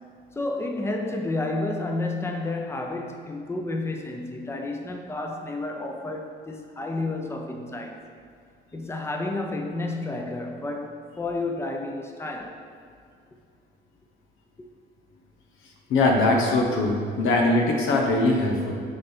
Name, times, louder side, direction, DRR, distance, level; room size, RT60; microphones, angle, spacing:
voice 1, 0.3-8.0 8.7-12.6, left 2 dB, 15° left, 3 dB, 0.6 m, -31 dB
voice 2, 15.9-18.7, left 2 dB, 85° left, 1 dB, 0.9 m, -21 dB
6.5 x 4.0 x 4.4 m, 2.3 s
cardioid pair, 90°, 20 cm